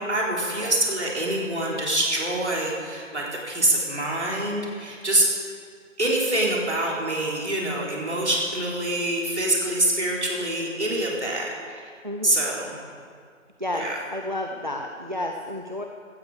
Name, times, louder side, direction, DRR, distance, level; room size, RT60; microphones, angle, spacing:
voice 1, 0.0-5.3 6.0-11.9 12.2-12.7 13.7-13.9, right 1 dB, 55° right, -3 dB, 4.0 m, -25 dB
voice 2, 12.0-12.3 13.6-15.8, left 1 dB, 35° right, 3 dB, 0.7 m, -31 dB
16.5 x 13.0 x 5.0 m, 2.1 s
figure-of-eight pair, 165°, 40 cm